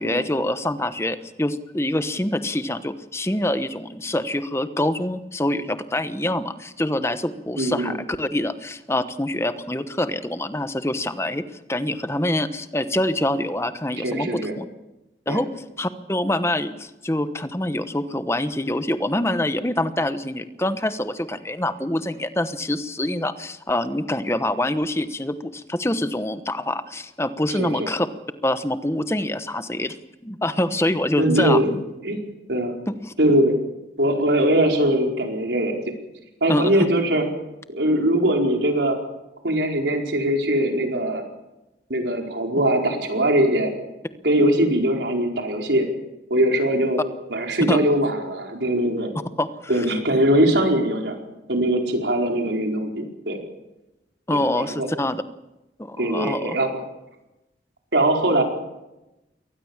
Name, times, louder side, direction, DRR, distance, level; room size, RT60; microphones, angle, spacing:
voice 1, 0.0-11.4 11.7-14.6 15.3-15.5 15.8-28.1 28.4-30.0 30.2-31.8 33.0-33.1 36.5-36.9 47.7-47.8 49.4-49.8 54.3-55.2 55.8-56.6, left 1 dB, 15° left, 11 dB, 1.1 m, -25 dB
voice 2, 7.6-8.0 14.0-14.5 15.3-15.4 27.6-27.9 31.2-31.7 32.0-32.8 33.2-33.5 34.0-35.8 36.4-37.2 37.7-39.0 39.4-41.2 41.9-43.7 44.2-45.9 46.3-47.0 47.3-49.1 49.7-51.1 51.5-53.4 54.5-54.9 56.0-56.7 57.9-58.4, right 1 dB, 80° right, 2 dB, 4.7 m, -21 dB
23.5 x 19.0 x 7.3 m, 0.96 s
head